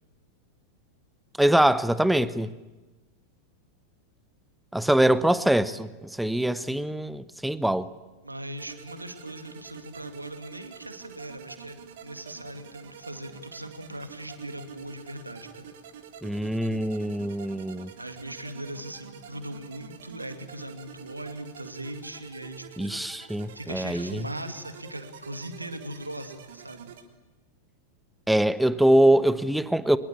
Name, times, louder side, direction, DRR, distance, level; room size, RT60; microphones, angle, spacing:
voice 1, 1.4-2.5 4.7-7.9 16.2-17.9 22.8-24.2 28.3-30.0, right 1 dB, 5° right, 0.9 m, -23 dB
voice 2, 8.2-15.7 18.0-23.0 23.5-26.9, right 1 dB, 85° right, 2.5 m, -39 dB
sound 1, 8.6-27.0, right 7 dB, 55° right, 3.1 m, -47 dB
24.5 x 22.0 x 8.5 m
figure-of-eight pair, 90°, 0 cm